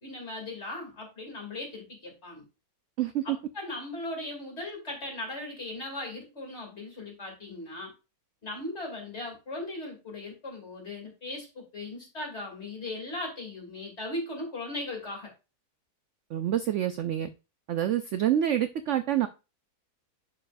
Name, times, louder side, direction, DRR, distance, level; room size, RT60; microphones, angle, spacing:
voice 1, 0.0-2.4 3.2-7.9 8.4-15.3, left 2 dB, 45° left, 0 dB, 3.1 m, -38 dB
voice 2, 3.0-3.4 16.3-17.3 17.7-19.3, right 11 dB, 70° right, 10 dB, 0.7 m, -27 dB
11.0 x 4.6 x 2.5 m, 0.29 s
omnidirectional pair, 1.7 m